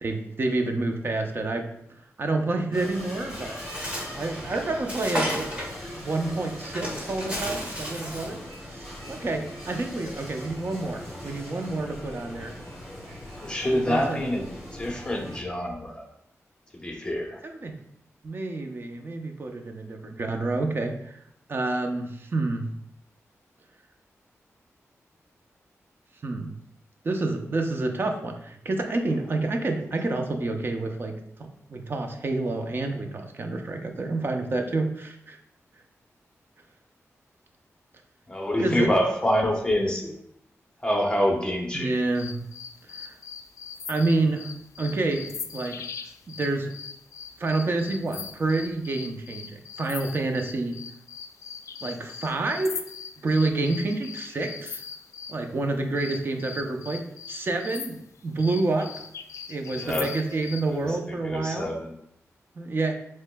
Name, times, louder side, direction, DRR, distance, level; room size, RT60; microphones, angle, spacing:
voice 1, 0.0-3.6 4.2-5.6 6.0-8.4 8.7-12.5 13.7-14.3 17.4-17.7 18.2-21.2 21.5-22.7 26.2-26.5 27.0-35.4 38.6-38.9 41.7-42.4 42.9-43.1 43.9-44.5 44.8-45.8 46.3-46.7 47.4-50.8 51.8-52.8 53.2-54.8 55.3-58.0 58.2-58.9 59.5-61.7 62.6-63.0, right 2 dB, 45° right, 4 dB, 0.6 m, -28 dB
sound 1, 2.7-15.4, left 1 dB, 5° right, 1.8 m, -40 dB
Bird, 3.3-8.4, equal, 25° right, 1.6 m, -34 dB
voice 2, 13.4-16.0 16.7-17.4 38.3-40.1 40.8-42.0 59.7-60.1 60.6-60.9 61.2-62.0, left 1 dB, 15° left, 1 dB, 0.9 m, -26 dB
sound 2, 42.1-55.4 56.0-60.7, left 6 dB, 70° left, 0.3 m, -40 dB
7.1 x 3.2 x 2.2 m, 0.76 s
wide cardioid pair, 105°, 5 cm